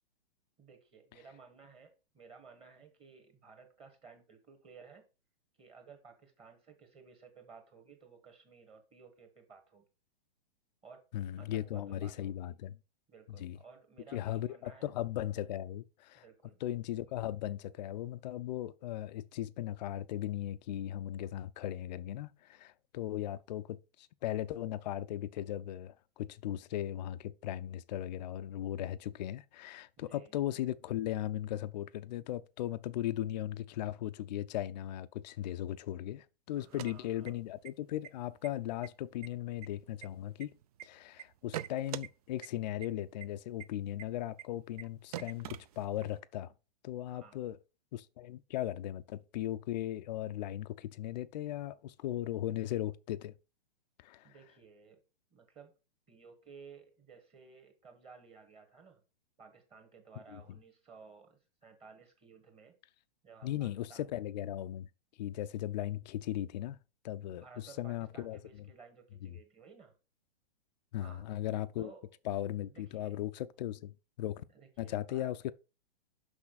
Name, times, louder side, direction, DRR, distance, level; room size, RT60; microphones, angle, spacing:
voice 1, 0.6-5.1 5.6-9.8 10.8-11.0 11.4-12.4 13.1-14.9 16.1-16.6 17.0-17.2 30.0-30.3 36.5-37.4 47.1-47.4 54.2-55.0 55.3-55.8 56.1-59.0 59.4-62.8 63.2-64.1 67.4-69.9 71.0-71.3 71.8-72.1 72.7-73.2 74.5-75.3, right 5 dB, 20° right, 1.4 m, -56 dB
voice 2, 11.1-12.8 13.4-13.6 14.1-16.2 16.6-40.5 40.8-46.5 46.8-47.6 47.9-53.3 54.0-54.3 60.3-60.4 63.4-64.9 65.2-66.8 67.0-68.4 69.2-69.4 70.9-71.9 72.3-74.4 74.8-75.5, left 13 dB, 45° left, 0.5 m, -37 dB
sound 1, 36.6-37.7 38.0-38.1 38.4-38.9 39.2-40.8 41.2-42.1 42.4-42.5 42.8-42.9 43.2-43.3 43.6-43.7 44.0-44.1 44.4-44.5 44.8-44.9 45.1-46.2, right 12 dB, 40° right, 0.4 m, -43 dB
6.2 x 5.6 x 4.0 m
hypercardioid pair, 125°, 30 cm